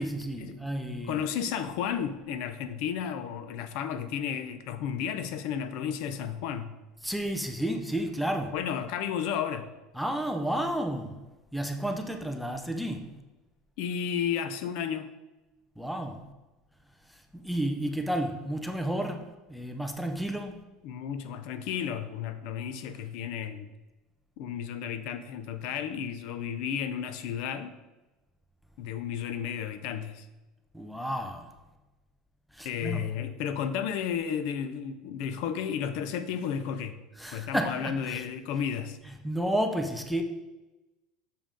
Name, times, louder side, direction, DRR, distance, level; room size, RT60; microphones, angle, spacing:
voice 1, 0.0-1.2 7.0-8.6 9.9-11.2 11.5-13.1 15.8-16.2 17.3-20.6 30.7-31.5 32.5-33.3 37.2-38.2 39.1-40.2, right 1 dB, ahead, 4 dB, 0.4 m, -32 dB
voice 2, 1.1-6.7 8.5-9.7 13.8-15.1 20.8-23.7 24.4-27.8 28.8-30.3 32.6-37.0 37.3-39.0, left 8 dB, 60° left, 10 dB, 0.5 m, -33 dB
6.8 x 5.1 x 3.7 m, 1.1 s
cardioid pair, 170°, 0 cm